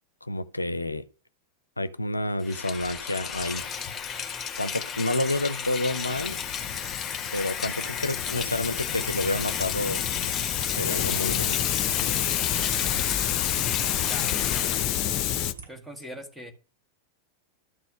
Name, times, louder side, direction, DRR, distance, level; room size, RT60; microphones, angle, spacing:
voice 1, 0.2-1.0 1.8-3.6 4.6-6.4 7.3-10.0 10.7-11.7, left 1 dB, 85° left, 0.5 m, -29 dB
Rain, 2.4-15.0, left 6 dB, 20° left, 1.4 m, -34 dB
Hiss, 3.6-15.5, left 11 dB, 40° left, 0.7 m, -29 dB
sound 1, 8.2-15.7, right 5 dB, 55° right, 5.5 m, -48 dB
voice 2, 14.1-15.1 15.7-16.5, equal, ahead, 1.8 m, -43 dB
12.5 x 4.1 x 6.3 m
figure-of-eight pair, 90°, 0 cm